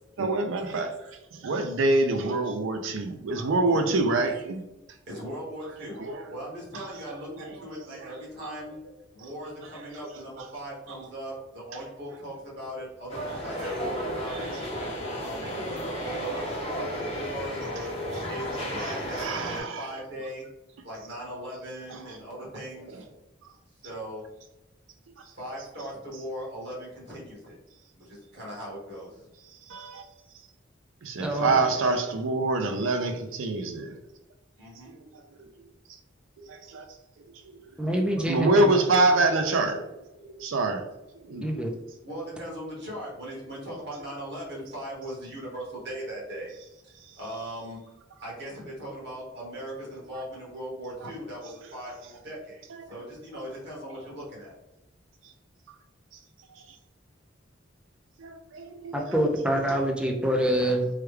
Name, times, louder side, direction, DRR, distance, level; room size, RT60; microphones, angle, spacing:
voice 1, 0.2-1.0 1.3-4.7 6.0-6.2 6.7-6.9 7.8-8.1 8.4-8.5 18.8-19.9 21.9-22.0 29.7-30.0 31.0-34.0 35.1-35.2 36.4-36.8 38.3-39.9 40.2-40.9 41.2-41.5 52.8-52.9 56.5-56.6 58.2-58.9, right 2 dB, 85° right, 0.4 m, -26 dB
voice 2, 5.1-6.0 6.3-8.8 9.1-14.5 15.2-16.4 16.9-20.4 20.8-23.1 23.7-24.2 25.3-27.5 28.0-29.3 34.6-34.9 42.0-46.5 46.8-47.8 48.2-54.5, equal, 60° right, 1.4 m, -39 dB
sound 1, 13.1-19.6, equal, 30° left, 0.7 m, -33 dB
voice 3, 31.2-31.6 37.8-38.7 41.4-41.7 58.9-60.9, right 1 dB, 5° right, 0.4 m, -26 dB
3.2 x 2.2 x 3.2 m
head